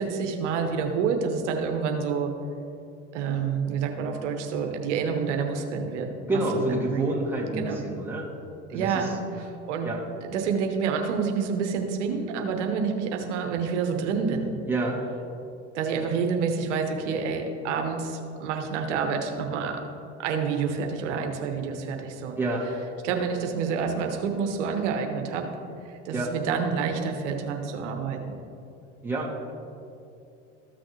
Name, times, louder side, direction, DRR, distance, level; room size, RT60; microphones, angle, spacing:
voice 1, 0.0-2.3 3.1-7.1 7.6-7.8 8.7-9.9 10.3-14.5 15.7-19.8 20.2-22.4 23.0-25.5 25.8-28.4, right 5 dB, 85° right, 4 dB, 1.0 m, -28 dB
voice 2, 6.3-8.3 8.7-9.1 9.8-10.0 14.7-15.0 22.4-22.7 26.1-26.3 29.0-29.5, right 2 dB, 5° right, -5 dB, 2.3 m, -28 dB
14.0 x 6.2 x 3.2 m, 2.6 s
hypercardioid pair, 85°, 35 cm